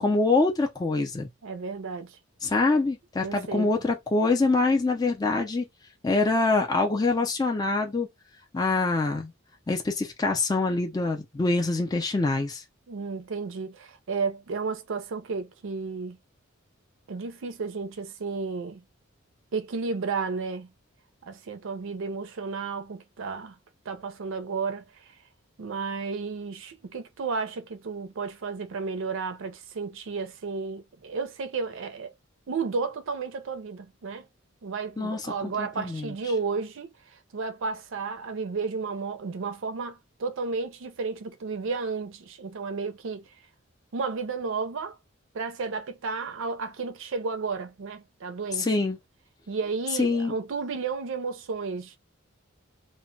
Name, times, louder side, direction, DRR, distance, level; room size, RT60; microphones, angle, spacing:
voice 1, 0.0-1.3 2.4-5.7 6.0-8.1 8.5-9.3 9.7-12.6 35.0-35.2 35.6-36.1 48.6-49.0 50.0-50.4, left 3 dB, 20° left, 0.4 m, -25 dB
voice 2, 1.4-2.2 3.2-3.7 12.9-16.2 17.1-18.8 19.5-20.7 21.2-23.6 23.9-24.8 25.6-32.1 32.5-34.2 34.6-36.9 37.3-43.3 43.9-45.0 45.3-48.7 49.5-52.0, right 4 dB, 65° right, 0.5 m, -32 dB
2.1 x 2.1 x 3.8 m
head